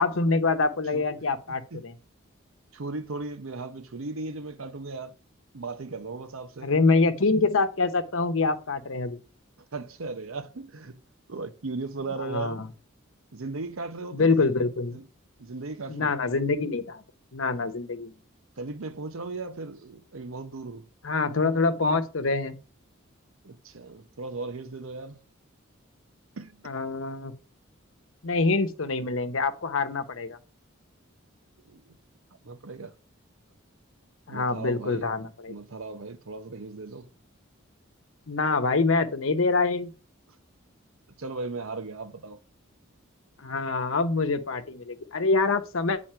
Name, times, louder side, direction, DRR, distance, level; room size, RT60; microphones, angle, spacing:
voice 1, 0.0-1.9 6.6-9.2 12.3-12.7 14.1-15.0 15.9-17.0 17.3-18.1 21.0-22.6 26.6-27.3 28.2-30.4 34.3-35.5 38.3-39.9 43.4-46.0, left 3 dB, 75° left, 0.9 m, -25 dB
voice 2, 1.5-1.9 2.7-5.1 5.5-6.7 9.6-11.0 11.3-12.6 13.3-14.5 14.9-15.0 15.4-16.2 18.6-20.9 23.4-25.2 26.4-26.7 31.6-32.0 32.4-32.9 34.3-35.1 35.5-37.1 41.2-42.4, right 3 dB, 80° right, 0.8 m, -37 dB
8.8 x 4.2 x 4.4 m
head